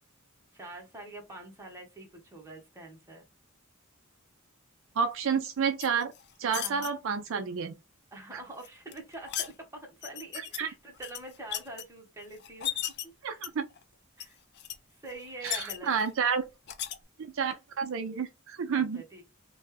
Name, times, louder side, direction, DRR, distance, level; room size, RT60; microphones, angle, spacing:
voice 1, 0.5-3.2 6.6-6.9 8.1-13.5 14.2-14.4 15.0-15.9 18.7-19.2, right 2 dB, 15° right, 1.1 m, -45 dB
voice 2, 5.0-6.1 6.4-7.8 10.6-10.7 13.2-13.7 15.4-16.5 17.2-19.0, right 6 dB, 65° right, 0.4 m, -30 dB
sound 1, 5.8-6.9 8.6-9.5 10.0-10.6 11.0-11.8 12.4-13.0 13.4-13.8 14.2-14.3 14.6-14.8 15.1-16.1 16.7-17.0, left 10 dB, 50° left, 0.4 m, -36 dB
3.1 x 2.2 x 3.3 m
head